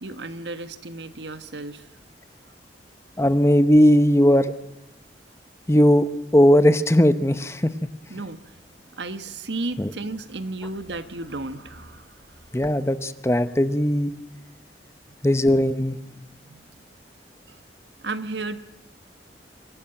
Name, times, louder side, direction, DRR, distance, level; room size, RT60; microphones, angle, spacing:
voice 1, 0.0-1.9 8.1-12.5 15.1-15.2 16.4-16.8 17.5-17.6 18.0-18.6, right 2 dB, 80° right, 10 dB, 1.4 m, -34 dB
voice 2, 3.2-4.5 5.7-6.1 6.3-7.9 9.8-9.9 12.5-14.1 15.2-16.0, equal, 15° left, 11 dB, 0.9 m, -18 dB
25.0 x 17.0 x 9.0 m, 0.92 s
head